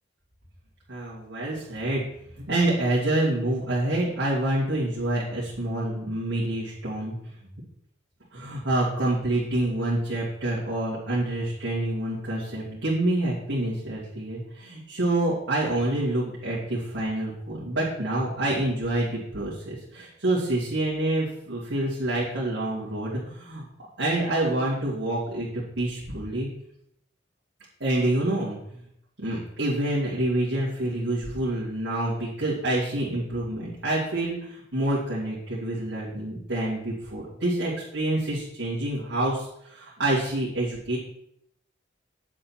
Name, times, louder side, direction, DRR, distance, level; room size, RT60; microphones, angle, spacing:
voice 1, 0.9-2.0 2.5-7.1 8.3-23.6 24.0-26.5 27.8-28.6 29.2-41.0, right 1 dB, 70° right, -9 dB, 2.8 m, -27 dB
9.2 x 7.5 x 4.5 m, 0.73 s
head